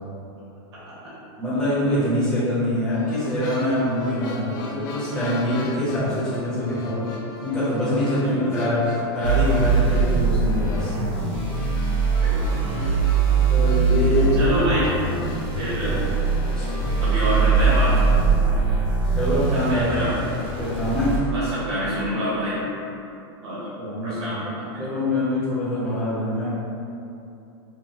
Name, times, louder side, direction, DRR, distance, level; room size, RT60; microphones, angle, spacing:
voice 1, 1.4-7.0 7.4-10.9 13.5-14.5 15.8-16.0 16.6-16.7 19.2-19.9 20.6-21.1 23.8-26.5, left 1 dB, 5° left, -11 dB, 1.0 m, -24 dB
sound 1, 2.9-17.4, left 3 dB, 45° left, 0.5 m, -38 dB
voice 2, 8.2-8.5 12.2-12.4 14.4-14.8 15.5-16.0 17.0-17.9 19.5-20.1 21.3-22.6 23.4-23.7 24.0-24.6, equal, 90° right, -9 dB, 1.4 m, -27 dB
sound 2, 9.2-21.2, right 4 dB, 55° right, 1.2 m, -22 dB
5.5 x 2.3 x 3.0 m, 2.8 s
supercardioid pair, 175°, 14 cm